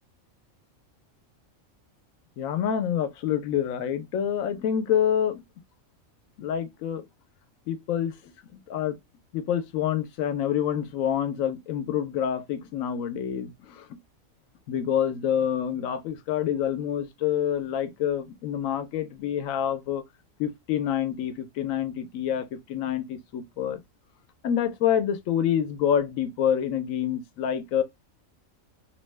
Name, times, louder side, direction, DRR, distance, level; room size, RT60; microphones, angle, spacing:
voice 1, 2.4-5.4 6.4-7.0 7.7-8.3 8.7-9.0 9.3-13.9 14.7-20.0 20.4-23.8 24.4-27.8, left 9 dB, 85° left, 1.0 m, -27 dB
2.9 x 2.1 x 3.2 m
omnidirectional pair, 1.4 m